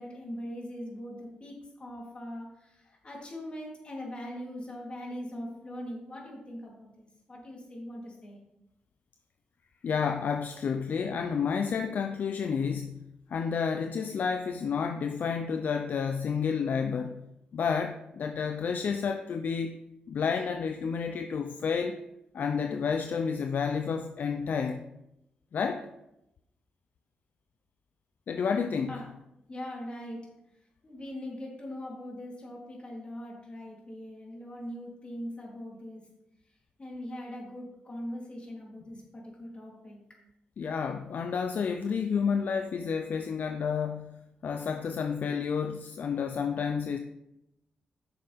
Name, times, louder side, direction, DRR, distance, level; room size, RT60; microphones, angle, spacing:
voice 1, 0.0-8.4 28.9-29.1 29.5-30.3 30.8-36.1 36.8-40.0, equal, 35° left, -2 dB, 3.4 m, -41 dB
voice 2, 9.8-13.0 13.3-17.2 17.5-19.7 20.1-22.0 22.3-24.8 25.5-25.9 28.3-29.0 40.6-44.1 44.4-47.0, left 6 dB, 60° left, 7 dB, 0.5 m, -30 dB
10.0 x 6.8 x 3.5 m, 0.86 s
cardioid pair, 75°, 3 cm